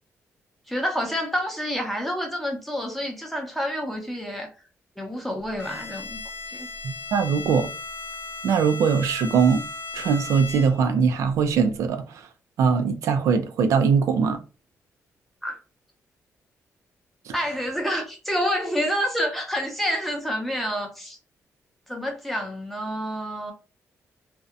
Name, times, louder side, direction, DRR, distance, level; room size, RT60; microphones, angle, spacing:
voice 1, 0.7-4.5 5.0-6.2 6.5-6.7 15.4-15.6 17.3-21.2 21.9-23.5, equal, 5° left, 0.6 m, -28 dB
Bowed string instrument, 5.6-11.0, left 3 dB, 50° left, 0.8 m, -36 dB
voice 2, 6.8-7.7 8.4-9.7 9.9-12.0 12.6-14.4 17.3-17.4, right 6 dB, 85° right, 0.4 m, -21 dB
2.7 x 2.0 x 2.3 m
wide cardioid pair, 170°, 5 cm